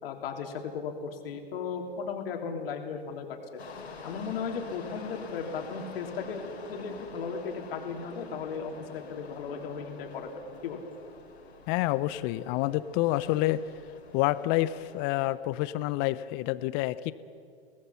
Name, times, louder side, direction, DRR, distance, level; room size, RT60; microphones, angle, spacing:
voice 1, 0.0-3.4 4.0-10.3 10.6-10.8, left 5 dB, 65° left, 3 dB, 3.3 m, -36 dB
sound 1, 3.6-15.3, left 4 dB, 85° left, 3.7 m, -47 dB
voice 2, 11.7-13.6 14.1-17.1, left 16 dB, 35° left, 16 dB, 0.8 m, -28 dB
24.0 x 18.5 x 5.8 m, 2.3 s
hypercardioid pair, 115°, 32 cm